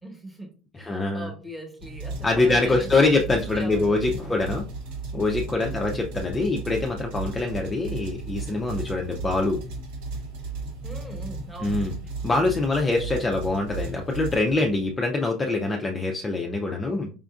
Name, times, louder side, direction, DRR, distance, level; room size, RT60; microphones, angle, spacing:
voice 1, 0.0-4.2 5.5-5.9 10.8-11.8, right 1 dB, 5° right, 1.1 m, -40 dB
voice 2, 0.8-1.3 2.2-4.7 5.1-9.6 11.6-11.9 12.2-17.1, left 3 dB, 15° left, 0.4 m, -24 dB
sound 1, 1.8-15.0, right 3 dB, 85° right, 1.2 m, -35 dB
4.9 x 2.5 x 2.3 m
supercardioid pair, 125°, 0 cm